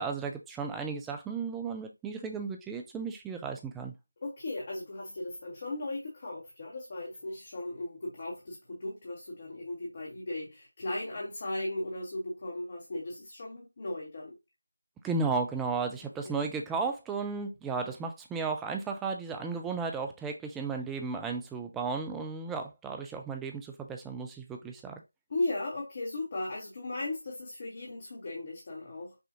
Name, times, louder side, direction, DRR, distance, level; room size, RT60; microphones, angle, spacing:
voice 1, 0.0-4.0 15.0-25.0, right 4 dB, 5° right, 0.3 m, -34 dB
voice 2, 4.2-14.3 16.0-16.3 25.3-29.2, left 2 dB, 30° left, 0.9 m, -37 dB
5.6 x 2.4 x 2.7 m
figure-of-eight pair, 165°, 0 cm